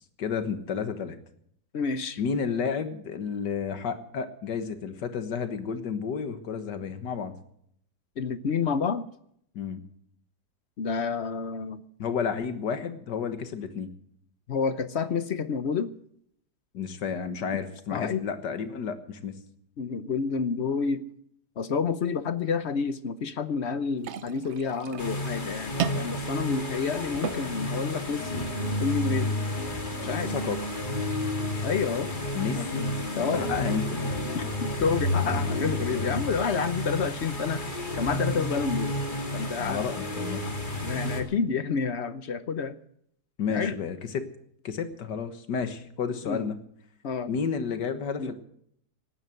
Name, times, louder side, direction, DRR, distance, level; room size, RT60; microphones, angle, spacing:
voice 1, 0.2-1.2 2.2-7.3 9.6-9.8 12.0-13.9 16.7-19.3 30.2-30.6 32.4-32.9 33.1-34.1 39.6-40.4 43.4-44.3 44.6-46.6 47.3-48.3, left 6 dB, 85° left, 9 dB, 2.0 m, -31 dB
voice 2, 1.7-2.2 8.2-9.0 10.8-11.8 14.5-15.9 17.9-18.2 19.8-21.1 21.6-29.4 30.0-30.3 31.6-32.1 32.5-32.7 33.2-33.5 34.3-38.9 39.3-40.0 40.4-40.5 40.8-42.8 43.5-43.8 46.2-46.5 47.0-47.3 48.2-48.3, left 5 dB, 50° left, 13 dB, 0.9 m, -29 dB
sound 1, 24.0-32.0, right 8 dB, 55° right, 0.8 m, -39 dB
sound 2, 25.0-41.2, left 1 dB, 30° left, 2.3 m, -31 dB
18.0 x 9.9 x 7.8 m, 0.69 s
omnidirectional pair, 1.8 m